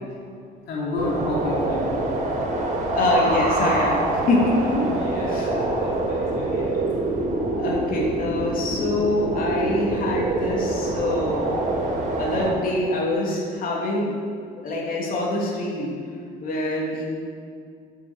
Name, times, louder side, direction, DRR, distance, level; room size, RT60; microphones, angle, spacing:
voice 1, 0.7-2.1 4.8-7.0, left 2 dB, 75° left, -4 dB, 3.2 m, -31 dB
sound 1, 1.0-12.5, right 2 dB, 50° right, 3.5 m, -25 dB
voice 2, 2.9-4.8 5.3-5.5 7.6-11.6 12.2-14.1 14.5-15.9 16.4-17.2, left 2 dB, 55° left, -4 dB, 3.3 m, -24 dB
13.0 x 8.5 x 7.5 m, 2.2 s
cardioid pair, 110°, 17 cm